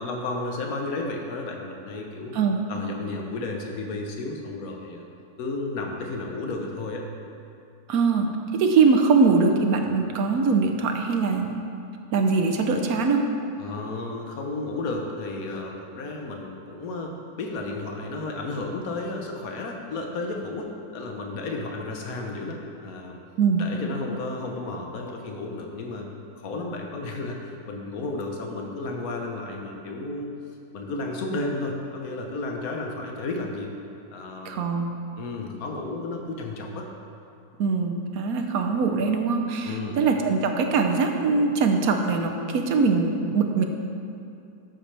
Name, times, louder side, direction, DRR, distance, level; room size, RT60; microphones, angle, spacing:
voice 1, 0.0-2.3 2.7-5.0 5.4-7.0 13.6-23.2 23.6-26.1 26.4-30.3 30.7-33.7 34.1-34.7 35.2-36.9 39.6-40.0, left 2 dB, 65° left, 1 dB, 1.5 m, -33 dB
voice 2, 7.9-8.3 8.5-11.5 12.1-13.3 23.4-23.6 34.4-34.9 37.6-43.6, right 4 dB, 70° right, 4 dB, 1.2 m, -22 dB
12.5 x 8.1 x 3.4 m, 2.7 s
omnidirectional pair, 1.7 m